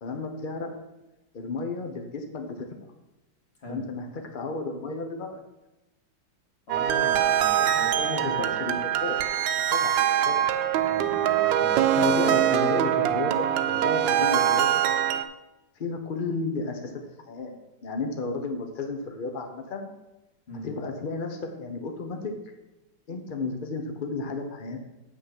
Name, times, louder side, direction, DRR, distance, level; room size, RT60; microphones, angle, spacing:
voice 1, 0.0-0.7 1.3-2.7 3.7-5.4 8.1-9.3 9.7-9.9 10.2-10.5 12.0-14.8 15.8-16.9 17.3-17.5 17.8-19.9 20.6-22.5 23.1-24.8, left 3 dB, 65° left, 4 dB, 0.5 m, -32 dB
voice 2, 3.6-3.9 6.7-8.9 10.9-12.1 20.5-20.7, equal, 30° left, -1 dB, 2.1 m, -40 dB
sound 1, 6.7-15.2, right 10 dB, 75° right, 1.2 m, -23 dB
7.8 x 6.2 x 5.8 m, 1.0 s
omnidirectional pair, 2.2 m